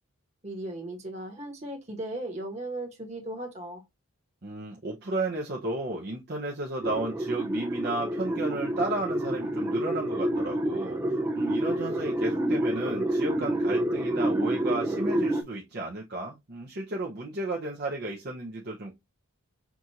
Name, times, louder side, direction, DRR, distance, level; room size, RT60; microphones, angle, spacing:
voice 1, 0.4-3.8, right 1 dB, 30° right, 1.2 m, -37 dB
voice 2, 4.4-18.9, right 2 dB, 45° right, 0.7 m, -33 dB
sound 1, 6.8-15.4, right 1 dB, 10° right, 0.4 m, -28 dB
5.9 x 2.5 x 2.7 m
head